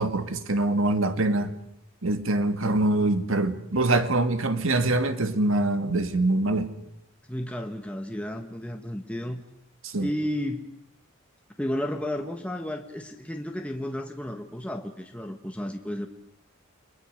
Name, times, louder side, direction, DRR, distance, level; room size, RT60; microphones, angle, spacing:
voice 1, 0.0-1.5 2.0-6.7 9.8-10.1, right 2 dB, 70° right, 1.8 m, -24 dB
voice 2, 7.3-9.4 10.0-10.7 11.6-16.1, left 1 dB, 5° left, 1.4 m, -32 dB
30.0 x 22.5 x 6.6 m
head